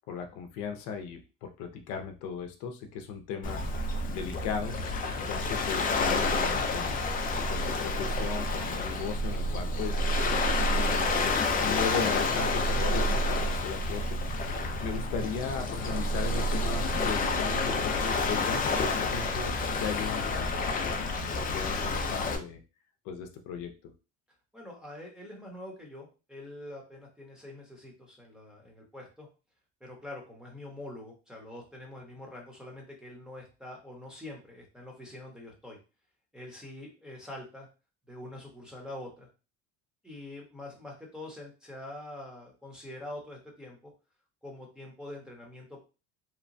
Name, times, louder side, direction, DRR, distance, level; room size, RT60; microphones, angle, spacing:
voice 1, 0.0-3.6 4.1-4.8 5.2-7.0 7.5-10.0 10.6-11.1 11.6-14.2 14.8-22.6 23.1-23.7, left 5 dB, 75° left, 5 dB, 0.6 m, -37 dB
Waves surf, 3.4-22.4, left 2 dB, 30° left, 0.4 m, -29 dB
voice 2, 24.5-29.3 29.8-35.8 36.3-37.7 38.1-39.3 40.0-43.9 44.4-45.8, left 1 dB, 5° right, -2 dB, 0.8 m, -45 dB
2.9 x 2.2 x 2.6 m, 0.32 s
cardioid pair, 125°, 30 cm